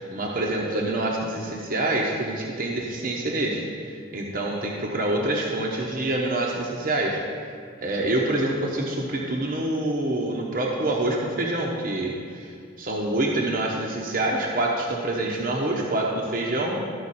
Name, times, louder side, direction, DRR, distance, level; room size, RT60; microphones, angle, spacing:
voice 1, 0.1-3.6 4.1-7.2 7.8-12.5 12.8-16.8, right 1 dB, 45° right, -2 dB, 1.0 m, -26 dB
13.5 x 5.7 x 4.2 m, 2.2 s
head